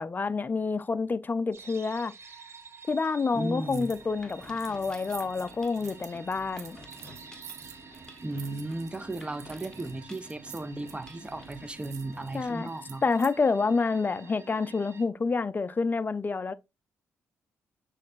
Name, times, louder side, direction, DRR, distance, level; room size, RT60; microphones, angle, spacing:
voice 1, 0.0-2.1 2.9-6.8 12.3-12.7 13.0-16.5, left 4 dB, 30° left, 0.4 m, -28 dB
sound 1, 1.5-15.1, right 5 dB, 45° right, 1.0 m, -50 dB
voice 2, 3.3-3.9 8.2-13.0, right 2 dB, 20° right, 0.7 m, -35 dB
Mechanisms, 3.7-12.5, left 1 dB, 10° left, 1.3 m, -52 dB
sound 2, 3.7-4.0 4.3-13.3, right 9 dB, 75° right, 0.7 m, -49 dB
6.4 x 3.2 x 2.5 m
hypercardioid pair, 50°, 6 cm